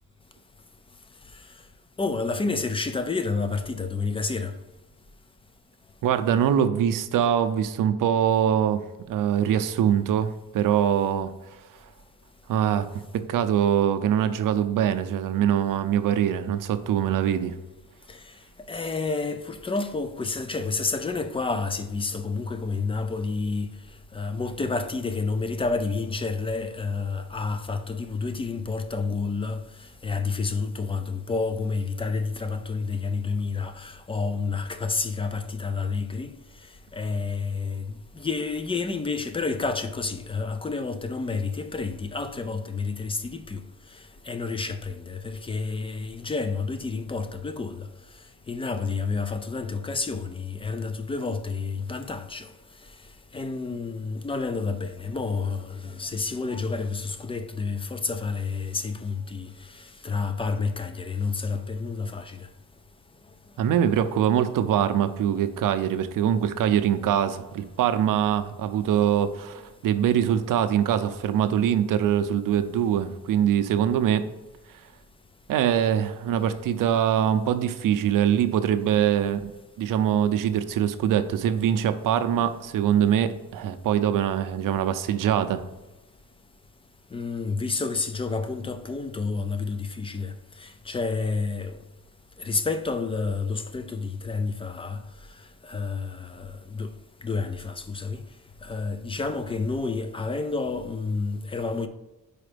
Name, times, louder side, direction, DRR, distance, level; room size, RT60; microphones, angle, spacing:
voice 1, 2.0-4.5 18.1-18.2 18.7-23.7 24.1-29.6 30.0-36.3 36.9-43.6 44.3-47.9 48.5-52.5 53.3-59.5 60.0-62.5 87.1-90.3 90.6-91.8 92.4-95.0 95.6-96.9 97.2-98.2 98.6-101.9, left 4 dB, 15° left, 0.3 m, -29 dB
voice 2, 6.0-8.8 9.1-11.3 12.5-17.5 63.6-74.2 75.5-79.5 79.8-85.6, right 9 dB, 70° right, 0.6 m, -23 dB
5.0 x 4.3 x 5.0 m
cardioid pair, 150°, 33 cm